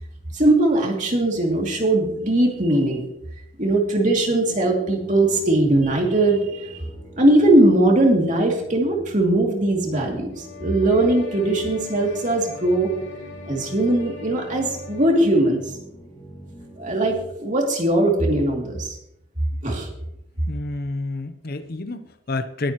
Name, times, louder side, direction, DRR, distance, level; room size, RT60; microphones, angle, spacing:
voice 1, 0.3-3.1 3.6-6.8 7.2-12.9 13.5-15.6 16.8-19.0 19.6-19.9, right 1 dB, 35° right, 0 dB, 2.6 m, -20 dB
sound 1, 4.1-17.3, equal, 15° left, 2.4 m, -43 dB
sound 2, 10.3-15.7, left 3 dB, 85° left, 5.5 m, -41 dB
voice 2, 20.5-22.7, left 2 dB, 45° left, 11 dB, 0.7 m, -29 dB
21.0 x 8.7 x 3.0 m, 0.78 s
head